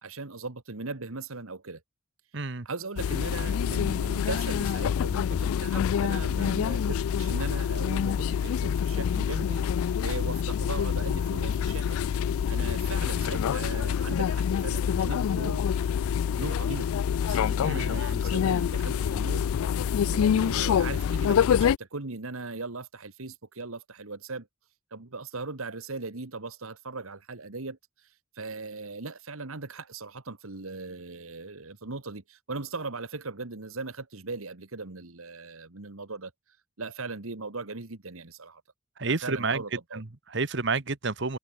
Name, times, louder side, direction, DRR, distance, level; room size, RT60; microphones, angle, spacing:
voice 1, 0.0-1.8 2.7-9.6 10.0-12.0 12.5-15.6 16.4-16.9 17.2-19.5 20.0-24.5 24.9-27.8 28.4-36.3 36.8-38.6 39.0-40.0, right 3 dB, 80° right, 1.7 m, -38 dB
voice 2, 2.3-2.7 17.6-18.2 39.0-39.6 39.9-41.4, right 4 dB, 55° right, 1.3 m, -30 dB
sound 1, 3.0-21.8, left 8 dB, 85° left, 0.3 m, -26 dB
head